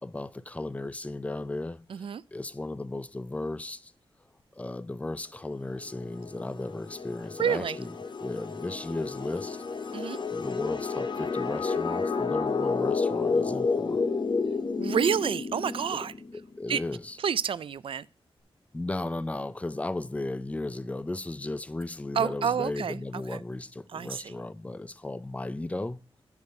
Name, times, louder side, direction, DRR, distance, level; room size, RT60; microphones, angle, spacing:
voice 1, 0.0-3.9 4.6-7.9 8.2-9.6 10.3-14.1 15.9-16.0 16.3-17.2 18.7-26.0, left 2 dB, 15° left, 0.4 m, -35 dB
voice 2, 1.9-2.2 7.4-7.8 9.9-10.2 14.8-16.1 16.7-16.8 17.2-18.1 22.1-23.0 23.3-23.4 23.9-24.3, right 7 dB, 60° right, 0.4 m, -28 dB
sound 1, 5.8-16.3, left 4 dB, 50° left, 0.9 m, -31 dB
9.9 x 4.3 x 4.7 m
wide cardioid pair, 110°, 10 cm